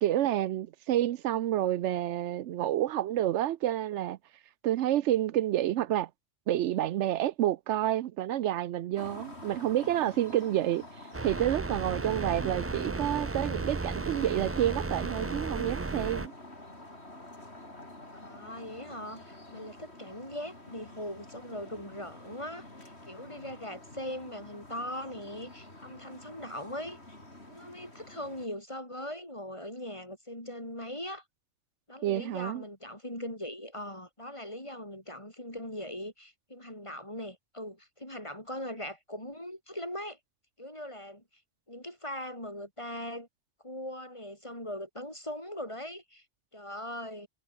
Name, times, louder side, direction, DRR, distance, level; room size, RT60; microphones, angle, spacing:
voice 1, 0.0-4.2 4.6-6.1 6.5-10.8 11.2-16.3 32.0-32.6, right 12 dB, 85° right, 0.9 m, -29 dB
sound 1, 8.9-28.5, left 1 dB, 70° left, 6.6 m, -49 dB
sound 2, 11.1-16.3, right 3 dB, 20° right, 0.4 m, -34 dB
voice 2, 18.1-27.0 27.5-31.2 31.9-40.2 40.6-41.2 41.7-43.3 43.6-46.2 46.5-47.3, left 1 dB, 25° left, 6.8 m, -40 dB
omnidirectional pair, 1.2 m